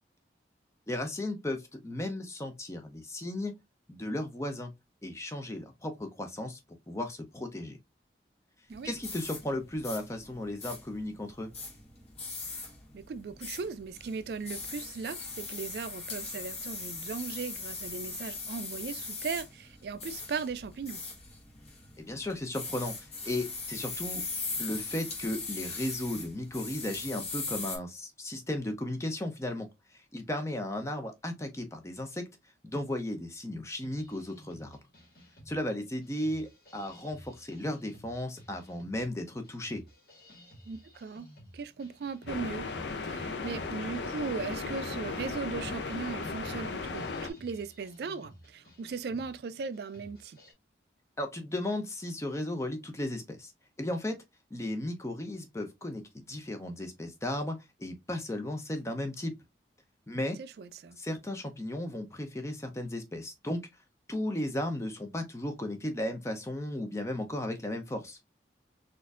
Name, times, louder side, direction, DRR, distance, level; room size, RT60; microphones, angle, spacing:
voice 1, 0.9-3.5 3.9-4.7 5.0-6.6 6.9-7.8 8.8-11.5 22.0-24.2 24.6-29.7 30.1-32.2 32.7-34.8 35.5-39.8 51.2-53.5 53.8-54.2 54.5-59.3 60.1-60.4 61.0-63.6 64.1-68.2, left 1 dB, 15° left, 0.5 m, -35 dB
sound 1, 8.7-27.8, left 3 dB, 35° left, 1.2 m, -40 dB
voice 2, 12.9-21.0 40.7-41.3 41.5-42.7 43.1-50.4 60.4-61.0, right 5 dB, 60° right, 0.3 m, -38 dB
sound 2, 33.9-50.5, equal, 55° left, 1.5 m, -55 dB
sound 3, 42.3-47.3, left 4 dB, 80° left, 0.5 m, -36 dB
4.2 x 2.5 x 2.4 m
head